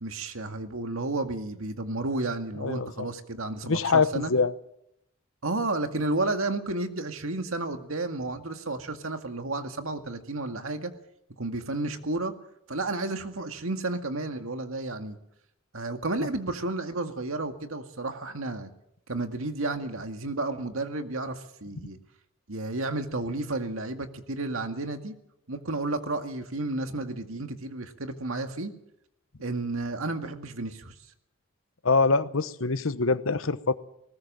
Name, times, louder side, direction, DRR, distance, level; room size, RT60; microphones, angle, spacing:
voice 1, 0.0-4.3 5.4-10.9 11.4-12.3 12.7-15.2 15.7-18.7 19.1-22.0 22.5-25.1 25.5-28.7 29.4-30.9, right 2 dB, 90° right, 6 dB, 2.0 m, -32 dB
voice 2, 2.6-3.1 3.6-4.5 16.2-16.3 31.8-33.7, left 4 dB, 75° left, 14 dB, 1.0 m, -24 dB
20.0 x 19.5 x 7.6 m, 0.78 s
head